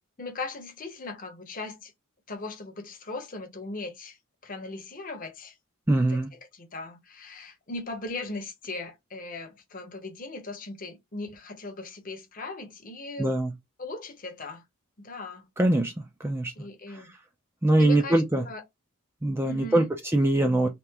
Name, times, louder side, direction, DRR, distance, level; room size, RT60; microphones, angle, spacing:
voice 1, 0.2-1.9 2.3-4.2 4.4-5.6 6.0-6.2 6.5-13.3 13.8-14.6 15.0-15.5 16.6-17.1 17.8-18.6 19.4-19.9, left 2 dB, 40° left, 0.7 m, -38 dB
voice 2, 5.9-6.3 13.2-13.5 15.6-16.5 16.9-17.0 17.6-18.4 19.2-20.7, right 1 dB, 10° right, 0.4 m, -23 dB
2.9 x 2.4 x 3.3 m
head